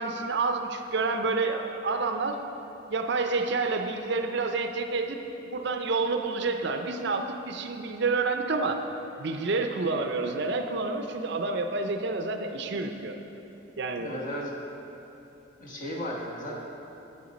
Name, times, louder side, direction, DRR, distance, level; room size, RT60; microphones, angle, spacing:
voice 1, 0.0-2.4 2.9-5.2 5.5-8.8 9.2-13.2 13.8-14.1, right 3 dB, 55° right, 6 dB, 0.5 m, -29 dB
voice 2, 14.0-14.5 15.6-16.5, equal, 40° left, -3 dB, 1.2 m, -35 dB
8.4 x 7.0 x 5.1 m, 2.9 s
head